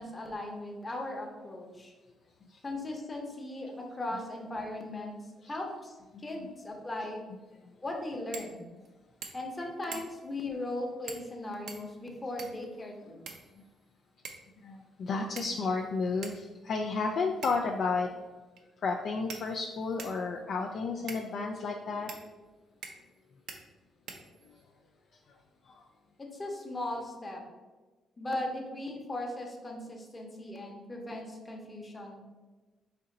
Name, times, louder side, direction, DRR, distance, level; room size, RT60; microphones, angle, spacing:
voice 1, 0.0-1.9 2.6-5.2 5.5-5.9 6.2-7.2 7.8-8.7 9.3-13.2 26.2-27.4 28.2-32.3, left 1 dB, 20° left, 1 dB, 0.8 m, -38 dB
sound 1, 8.3-8.5 8.9-9.0 9.2-9.5 9.9-10.3 11.1-11.3 11.7-12.7 13.3-13.8 14.3-14.5 15.4-15.8 16.2-16.4 17.4-17.8 18.6-18.7 19.3-20.2 21.1-21.3 22.1-22.2 22.8-23.2 23.5-23.6 24.1-24.6, right 5 dB, 75° right, 0.5 m, -45 dB
voice 2, 14.6-18.1 18.8-22.1, left 4 dB, 60° left, 2 dB, 0.3 m, -32 dB
4.2 x 2.8 x 3.8 m, 1.2 s
cardioid pair, 90°, 0 cm